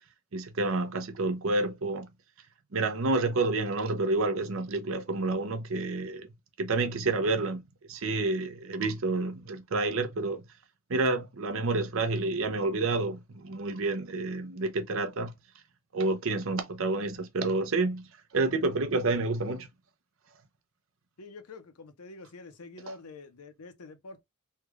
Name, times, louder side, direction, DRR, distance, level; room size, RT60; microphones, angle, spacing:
voice 1, 0.3-2.1 2.7-6.3 6.6-7.6 7.9-10.4 10.9-15.3 15.9-18.1 18.3-19.7, right 3 dB, 65° right, 0.6 m, -29 dB
voice 2, 21.2-24.2, left 3 dB, 90° left, 0.8 m, -46 dB
3.3 x 2.3 x 3.1 m
head